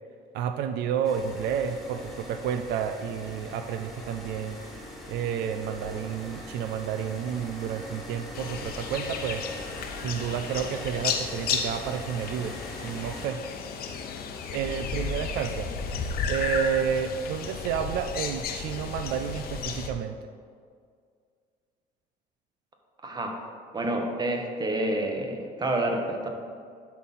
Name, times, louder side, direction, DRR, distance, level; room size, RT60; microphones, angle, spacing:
voice 1, 0.3-4.6 5.1-9.5 10.0-12.6 12.8-13.4 14.5-15.7 16.3-20.2, right 8 dB, 80° right, 8 dB, 0.4 m, -30 dB
sound 1, 1.0-13.3, left 1 dB, ahead, 1.6 m, -42 dB
sound 2, 8.3-19.9, left 5 dB, 65° left, 0.8 m, -33 dB
voice 2, 23.0-23.3 23.7-26.3, right 1 dB, 25° right, 2 dB, 1.1 m, -28 dB
11.0 x 4.1 x 4.1 m, 2.1 s
cardioid pair, 110°, 17 cm